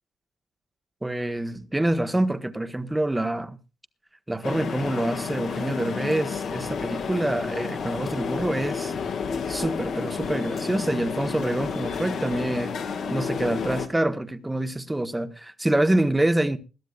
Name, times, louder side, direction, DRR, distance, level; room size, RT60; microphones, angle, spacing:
voice 1, 1.0-3.6 4.3-8.9 9.5-12.8 13.1-16.6, right 1 dB, 10° right, 1.1 m, -26 dB
sound 1, 4.4-13.9, left 6 dB, 60° left, 1.9 m, -31 dB
21.0 x 12.5 x 2.4 m
cardioid pair, 90°, 0 cm